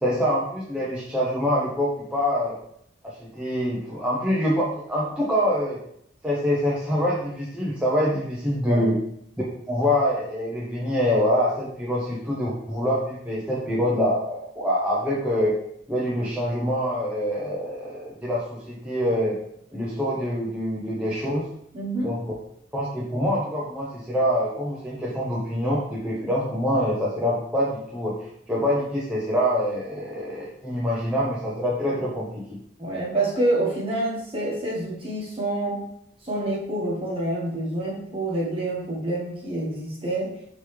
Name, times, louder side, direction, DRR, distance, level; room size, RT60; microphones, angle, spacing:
voice 1, 0.0-2.6 3.0-5.8 6.2-9.0 9.7-15.6 15.9-19.4 19.7-21.5 22.0-22.2 22.7-32.6, equal, 5° right, -7 dB, 0.6 m, -25 dB
voice 2, 21.7-22.1 32.8-35.9 36.2-40.3, right 1 dB, 30° right, -4 dB, 1.4 m, -27 dB
5.2 x 3.0 x 3.3 m, 0.72 s
head